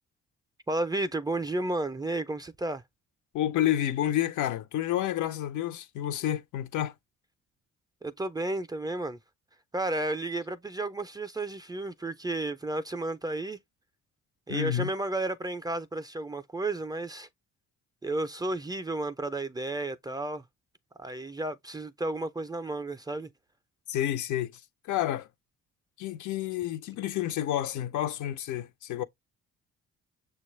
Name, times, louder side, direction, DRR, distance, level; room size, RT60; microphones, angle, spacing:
voice 1, 0.7-2.8 8.0-9.2 9.7-13.6 14.5-17.3 18.0-20.4 21.0-23.3, right 2 dB, 15° right, 0.3 m, -32 dB
voice 2, 3.3-6.9 14.5-14.9 23.9-25.3 26.0-29.0, left 12 dB, 75° left, 0.5 m, -30 dB
6.3 x 2.2 x 3.0 m
cardioid pair, 90°, 30 cm